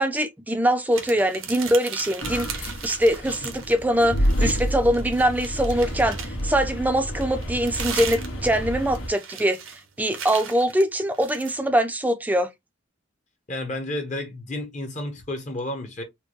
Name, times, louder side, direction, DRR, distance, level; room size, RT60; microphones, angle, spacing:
voice 1, 0.0-9.6 10.0-12.5, equal, 10° right, 0.5 m, -23 dB
sound 1, 0.9-3.8 4.1-6.5 7.2-11.6, right 7 dB, 85° right, 1.0 m, -37 dB
sound 2, 2.2-9.1, equal, 85° left, 1.4 m, -29 dB
voice 2, 13.5-16.0, left 1 dB, 40° left, 0.9 m, -31 dB
4.4 x 2.2 x 3.0 m
head